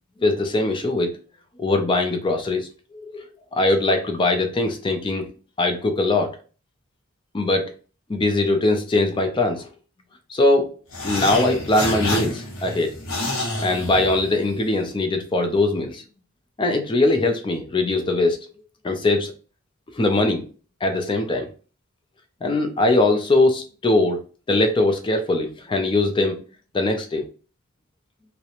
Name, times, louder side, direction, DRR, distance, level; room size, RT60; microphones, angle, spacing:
voice 1, 0.2-1.1 1.6-2.7 2.9-3.2 3.5-5.3 5.6-6.4 7.3-7.7 8.1-9.7 10.3-10.8 11.0-12.9 13.6-16.0 16.6-18.4 18.8-19.3 19.9-20.5 20.8-21.5 22.4-24.2 24.5-26.4 26.7-27.2, left 2 dB, 25° left, 5 dB, 0.4 m, -21 dB
sound 1, 10.9-14.6, left 2 dB, 75° left, 0.9 m, -28 dB
2.9 x 2.1 x 2.4 m, 0.36 s
head